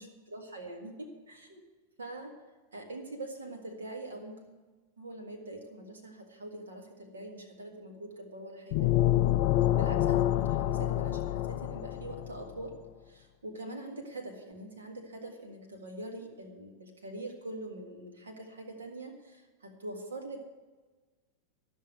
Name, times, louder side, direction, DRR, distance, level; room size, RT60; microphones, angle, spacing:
voice 1, 0.0-1.6 2.0-2.3 2.7-4.6 5.0-8.9 9.7-12.8 13.0-20.5, right 2 dB, 70° right, 4 dB, 1.8 m, -43 dB
sound 1, 8.7-12.4, left 13 dB, 50° left, 0.4 m, -27 dB
13.0 x 6.5 x 9.1 m, 1.3 s
figure-of-eight pair, 90°, 0 cm